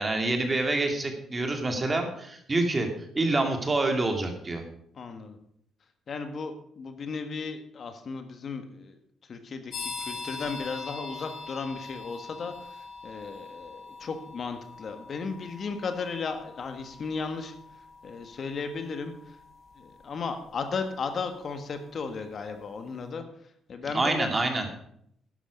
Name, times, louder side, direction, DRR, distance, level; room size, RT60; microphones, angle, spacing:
voice 1, 0.0-2.9 3.1-4.6 23.9-24.7, right 2 dB, 25° right, 4 dB, 2.5 m, -27 dB
voice 2, 4.9-5.4 6.1-17.5 18.0-19.4 19.8-24.3, left 4 dB, 50° left, 7 dB, 1.6 m, -35 dB
sound 1, 9.7-22.2, left 4 dB, 70° left, 3.5 m, -43 dB
11.5 x 10.0 x 5.2 m, 0.69 s
cardioid pair, 90°, 0 cm